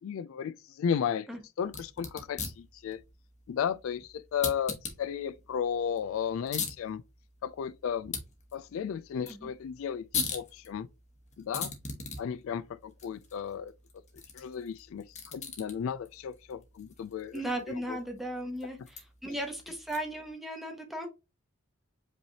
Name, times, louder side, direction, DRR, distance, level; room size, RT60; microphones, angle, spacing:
voice 1, 0.0-1.3 1.6-3.0 3.5-7.0 7.4-8.1 8.5-10.9 11.4-11.7 12.2-13.7 14.3-18.0, left 7 dB, 65° left, 0.3 m, -34 dB
sound 1, 1.6-20.3, left 5 dB, 35° left, 1.1 m, -42 dB
voice 2, 17.3-21.1, right 1 dB, ahead, 1.0 m, -36 dB
5.1 x 3.3 x 2.8 m
head